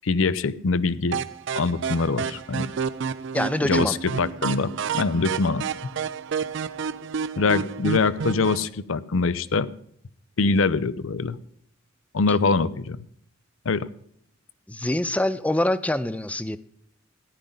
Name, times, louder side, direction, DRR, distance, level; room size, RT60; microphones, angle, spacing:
voice 1, 0.0-1.2 1.6-2.7 3.6-5.9 7.4-9.7 10.4-11.4 12.1-13.0 13.7-13.9, left 4 dB, 75° left, 16 dB, 0.6 m, -24 dB
sound 1, 1.1-8.7, right 6 dB, 60° right, 0.5 m, -30 dB
voice 2, 3.3-3.9 14.7-16.6, left 1 dB, 5° left, 15 dB, 0.4 m, -25 dB
14.5 x 10.5 x 3.9 m, 0.67 s
head